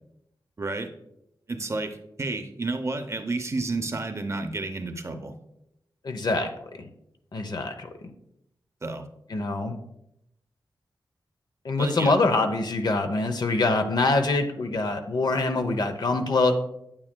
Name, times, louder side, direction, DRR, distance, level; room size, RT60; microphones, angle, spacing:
voice 1, 0.6-0.9 1.5-5.4 8.8-9.0 11.8-12.1, right 3 dB, 35° right, 7 dB, 0.7 m, -31 dB
voice 2, 6.0-6.5 7.3-7.9 9.3-9.8 11.6-16.5, left 3 dB, 55° left, 7 dB, 0.7 m, -24 dB
8.8 x 8.4 x 2.2 m, 0.82 s
wide cardioid pair, 100°, 8 cm